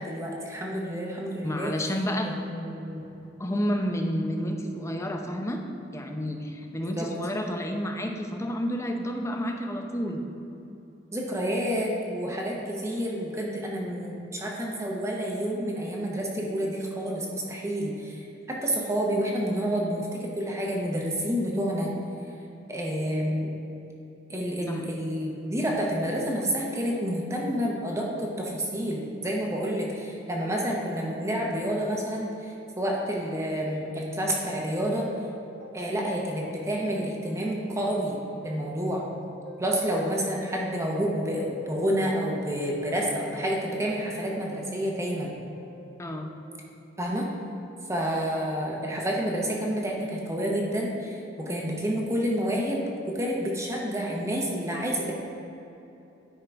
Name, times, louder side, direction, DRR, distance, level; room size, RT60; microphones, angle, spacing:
voice 1, 0.0-1.9 2.2-3.1 6.8-7.1 11.1-18.2 18.5-21.9 22.7-23.5 24.3-35.1 35.7-38.2 38.4-39.1 39.6-45.4 47.0-47.3 47.9-55.1, equal, 15° right, -2 dB, 0.8 m, -29 dB
voice 2, 1.4-2.3 3.4-5.6 5.9-10.2 24.7-24.8 46.0-46.3, equal, 15° left, 3 dB, 0.6 m, -30 dB
sound 1, 35.0-36.9 37.2-39.1 39.5-41.3 41.7-43.5 43.9-45.8, right 1 dB, 55° right, 0.9 m, -48 dB
10.0 x 3.7 x 4.5 m, 2.9 s
head